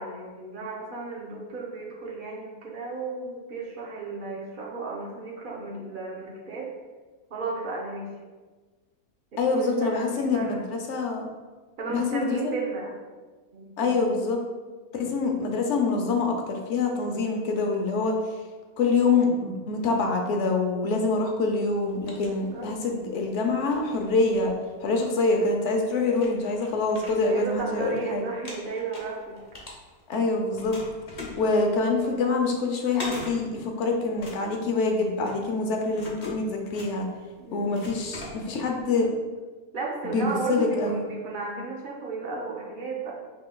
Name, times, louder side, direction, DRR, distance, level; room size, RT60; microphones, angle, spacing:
voice 1, 0.0-6.7 7.3-8.1 9.3-10.6 11.8-12.9 13.5-14.2 22.2-22.7 27.3-29.4 37.4-37.8 39.7-43.1, right 4 dB, 50° right, -2 dB, 0.7 m, -34 dB
voice 2, 9.4-11.3 11.9-12.5 13.8-14.4 14.9-18.3 18.8-24.5 24.8-28.2 30.1-30.7 31.2-37.1 37.5-39.1 40.1-41.0, left 3 dB, 60° left, 2 dB, 0.9 m, -25 dB
sound 1, 21.7-23.0 23.4-25.1 25.7-25.8 26.1-28.0 28.3-30.2 30.5-38.8, left 1 dB, 35° left, 0.7 m, -42 dB
5.8 x 3.2 x 2.2 m, 1.3 s
omnidirectional pair, 1.5 m